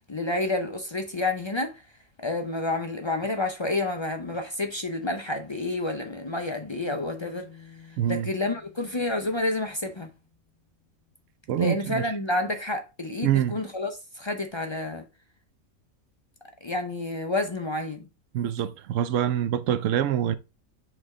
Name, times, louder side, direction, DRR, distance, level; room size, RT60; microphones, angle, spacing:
voice 1, 0.1-1.8 2.2-7.5 8.1-10.1 11.6-15.0 16.6-18.1, left 2 dB, 45° left, 0.3 m, -29 dB
sound 1, 6.9-10.0, left 7 dB, 85° left, 1.5 m, -49 dB
voice 2, 8.0-8.3 11.5-12.0 13.2-13.6 18.3-20.4, right 10 dB, 65° right, 0.9 m, -25 dB
7.9 x 3.3 x 3.7 m
omnidirectional pair, 1.5 m